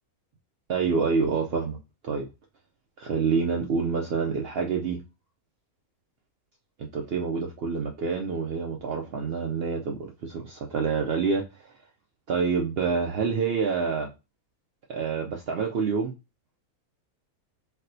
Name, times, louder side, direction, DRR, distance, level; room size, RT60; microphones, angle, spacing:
voice 1, 0.7-1.8 2.0-2.3 3.0-5.0 6.8-11.7 12.3-14.1 14.9-16.1, right 5 dB, 70° right, 0.5 m, -27 dB
4.2 x 2.1 x 2.6 m
omnidirectional pair, 1.5 m